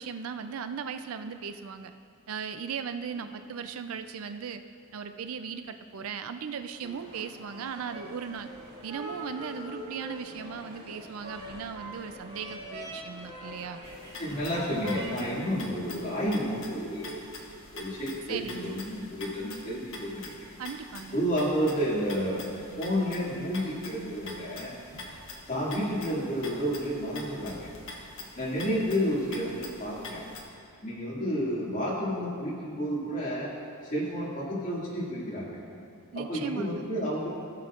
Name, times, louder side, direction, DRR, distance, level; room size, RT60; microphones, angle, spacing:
voice 1, 0.0-1.9 2.3-4.6 4.9-8.5 8.8-13.8 18.3-18.8 20.6-21.2 36.1-36.9, right 6 dB, 70° right, 9 dB, 0.4 m, -37 dB
sound 1, 6.8-15.1, equal, 50° right, 2.2 m, -42 dB
sound 2, 13.8-30.4, left 2 dB, 60° left, 1.2 m, -45 dB
voice 2, 14.2-17.3 17.7-20.4 21.1-24.7 25.5-27.7 28.4-30.2 30.8-33.5 33.8-35.6 36.1-37.3, equal, 35° left, -7 dB, 2.2 m, -31 dB
16.5 x 6.7 x 2.5 m, 2.3 s
head